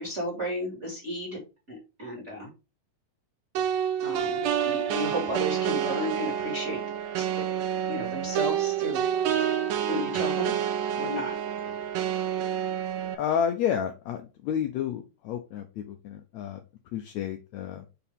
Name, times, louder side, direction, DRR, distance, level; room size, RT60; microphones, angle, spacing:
voice 1, 0.0-1.4 1.7-2.5 4.0-6.8 7.2-7.3 7.9-9.0 9.8-10.5 10.9-11.3 11.6-11.8, equal, 25° right, -2 dB, 2.0 m, -33 dB
sound 1, 3.6-13.2, right 9 dB, 80° right, 2.4 m, -28 dB
voice 2, 13.2-16.6 16.9-17.8, left 8 dB, 85° left, 5 dB, 1.6 m, -30 dB
6.4 x 4.6 x 3.5 m, 0.29 s
omnidirectional pair, 4.0 m